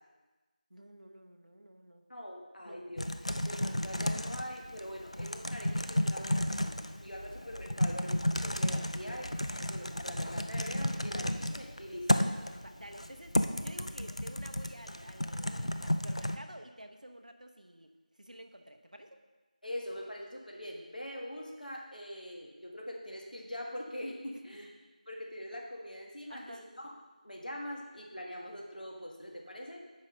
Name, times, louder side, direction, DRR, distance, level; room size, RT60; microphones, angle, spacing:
voice 1, 0.7-2.1 2.6-3.0 6.0-6.3 12.6-17.9 18.2-19.2 24.5-24.8 26.3-26.7, right 1 dB, 60° right, 5 dB, 0.8 m, -51 dB
voice 2, 2.1-3.0 3.4-9.3 9.6-12.3 19.6-24.7 25.1-26.9 27.2-29.8, equal, 75° left, -1 dB, 1.6 m, -43 dB
Typing, 3.0-16.4, left 1 dB, 45° left, 0.4 m, -33 dB
8.2 x 4.9 x 5.3 m, 1.2 s
figure-of-eight pair, 180°, 5 cm